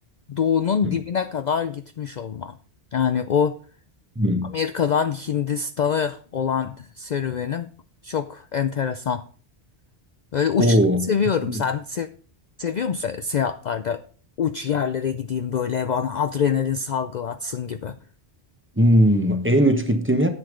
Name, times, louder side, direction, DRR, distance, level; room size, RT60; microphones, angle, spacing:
voice 1, 0.3-2.5 2.9-3.6 4.5-7.7 8.0-9.2 10.3-10.8 11.1-12.1 12.6-14.0 14.4-18.0, left 7 dB, 50° left, 0.6 m, -25 dB
voice 2, 4.2-4.6 10.6-11.1 11.5-11.6 18.8-20.3, equal, 10° right, 1.0 m, -19 dB
9.6 x 8.0 x 5.0 m
omnidirectional pair, 1.1 m